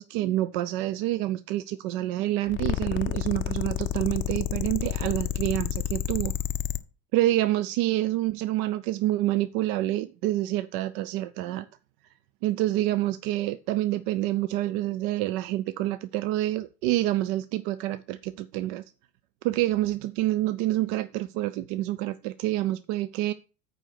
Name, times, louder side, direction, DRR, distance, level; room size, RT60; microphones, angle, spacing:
voice 1, 0.0-6.3 7.1-11.7 12.4-18.8 19.4-23.3, right 15 dB, 55° right, 0.6 m, -27 dB
sound 1, 2.5-6.8, left 11 dB, 25° left, 0.6 m, -29 dB
9.0 x 4.0 x 6.0 m
hypercardioid pair, 100°, 49 cm